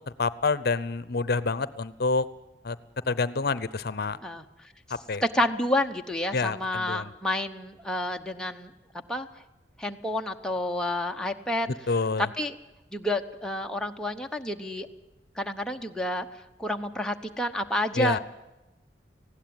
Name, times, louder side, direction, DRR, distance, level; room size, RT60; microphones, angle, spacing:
voice 1, 0.2-2.3 2.6-2.8 3.1-4.2 5.1-5.2 6.3-7.1 11.9-12.3 17.9-18.2, left 4 dB, 60° left, 17 dB, 0.8 m, -27 dB
voice 2, 5.2-8.7 9.1-9.3 9.8-11.7 12.2-12.6 12.9-14.9 15.4-16.3 16.6-18.2, left 1 dB, 5° left, 2 dB, 1.0 m, -29 dB
19.5 x 16.0 x 9.5 m, 1.0 s
head